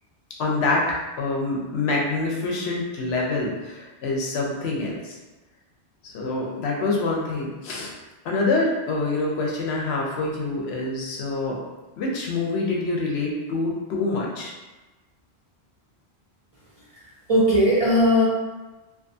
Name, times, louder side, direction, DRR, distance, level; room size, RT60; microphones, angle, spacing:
voice 1, 0.4-5.2 6.0-7.9 8.2-11.6 12.0-14.5, left 3 dB, 80° left, -2 dB, 0.9 m, -26 dB
voice 2, 16.9-18.2, equal, 45° right, -8 dB, 0.4 m, -19 dB
2.5 x 2.3 x 2.6 m, 1.1 s
omnidirectional pair, 1.1 m